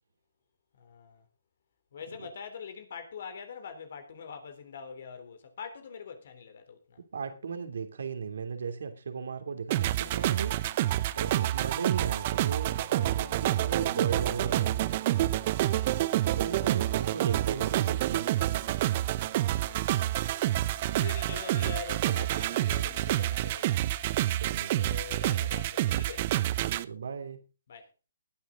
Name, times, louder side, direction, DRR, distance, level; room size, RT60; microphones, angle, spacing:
voice 1, 0.8-1.2 1.9-7.0 15.5-16.9 19.1-20.1 21.0-23.8 24.7-26.3 27.7-27.9, left 6 dB, 60° left, 3.5 m, -44 dB
voice 2, 7.1-10.6 11.1-14.8 16.2-18.5 20.8-21.1 24.4-24.8 26.5-27.4, right 6 dB, 70° right, 2.9 m, -36 dB
sound 1, 9.7-26.8, right 14 dB, 40° right, 0.9 m, -28 dB
19.0 x 9.6 x 3.8 m
hypercardioid pair, 140°, 0 cm